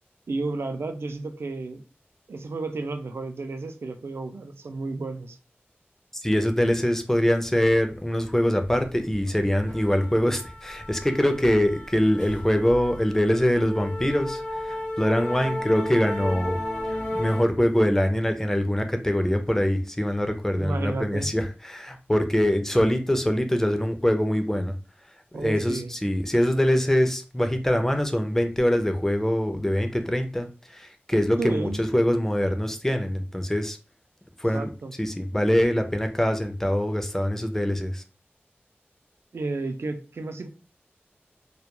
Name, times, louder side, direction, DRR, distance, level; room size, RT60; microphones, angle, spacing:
voice 1, 0.3-1.8 2.3-5.4 20.6-21.3 25.3-25.9 31.4-31.8 34.5-34.9 39.3-40.5, right 3 dB, 85° right, 0.4 m, -32 dB
voice 2, 6.1-16.6 16.9-24.7 25.3-33.8 34.4-34.7 35.0-38.0, equal, 10° left, 0.4 m, -24 dB
sound 1, 8.6-8.9 9.1-17.4, left 1 dB, 45° left, 0.8 m, -34 dB
2.2 x 2.2 x 2.9 m
wide cardioid pair, 75°, 4 cm